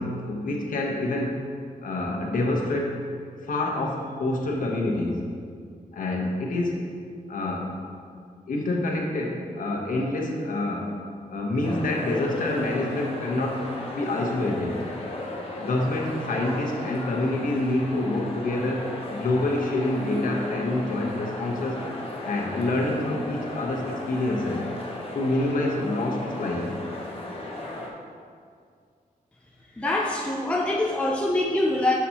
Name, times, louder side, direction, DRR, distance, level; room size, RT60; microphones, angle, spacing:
voice 1, 0.0-1.4 1.8-2.9 3.4-5.3 5.9-6.8 7.3-7.8 8.5-11.0 11.3-14.8 15.6-21.8 22.2-24.6 25.1-26.7, left 2 dB, 70° left, 0 dB, 1.1 m, -27 dB
sound 1, 11.6-27.9, left 2 dB, 40° left, 1.0 m, -36 dB
voice 2, 29.8-31.9, left 2 dB, 10° left, -2 dB, 0.5 m, -24 dB
7.1 x 7.0 x 2.9 m, 2.2 s
wide cardioid pair, 130°, 15 cm